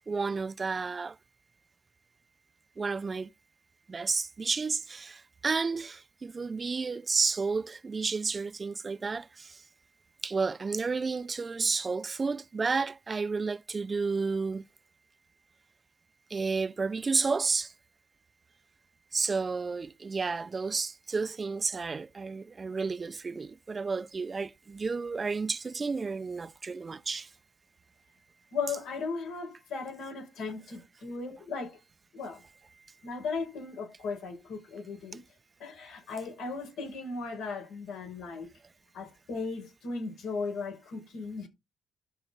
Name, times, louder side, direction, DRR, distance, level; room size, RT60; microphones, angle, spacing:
voice 1, 0.1-1.2 2.8-3.3 3.9-9.6 10.2-14.7 16.3-17.7 19.1-27.3, right 4 dB, 30° right, 0.6 m, -31 dB
voice 2, 28.5-31.8 32.1-32.4 33.0-35.2 35.6-38.5 38.9-41.5, left 4 dB, 85° left, 5.8 m, -37 dB
12.5 x 5.8 x 3.9 m
cardioid pair, 90°, 0 cm